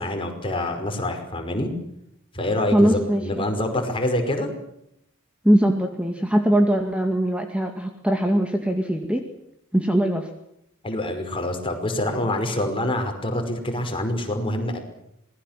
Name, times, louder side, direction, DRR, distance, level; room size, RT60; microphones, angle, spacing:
voice 1, 0.0-1.7 2.3-4.5 10.8-14.8, left 1 dB, 25° left, 4 dB, 5.4 m, -26 dB
voice 2, 2.7-3.4 5.4-9.2 9.7-10.3, equal, 5° right, 4 dB, 2.2 m, -21 dB
26.5 x 20.5 x 7.6 m, 0.78 s
head